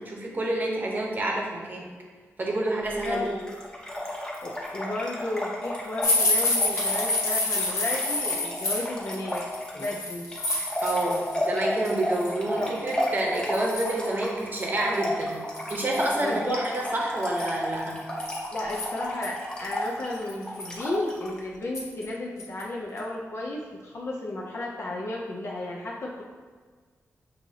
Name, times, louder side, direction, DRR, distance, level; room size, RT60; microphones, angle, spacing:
voice 1, 0.0-1.9 2.4-3.3 10.8-18.0, right 1 dB, 35° right, -1 dB, 0.8 m, -28 dB
Trickle dribble / Fill (with liquid), 2.9-21.4, left 1 dB, 15° left, 0.8 m, -33 dB
voice 2, 3.0-3.5 4.4-9.4 9.8-10.3 12.6-12.7 16.2-16.6 18.5-26.2, left 2 dB, 55° left, -3 dB, 0.5 m, -33 dB
sound 1, 6.0-11.4 11.7-12.3 12.9-13.0 13.3-14.1 14.6-14.7 14.9-15.0 15.6-16.2 17.2-19.3 19.8-19.9 20.3-20.8 21.7-22.1 22.4-22.6 23.0-23.1, left 2 dB, 70° left, 1.1 m, -28 dB
6.3 x 2.7 x 2.8 m, 1.5 s
wide cardioid pair, 120°, 5 cm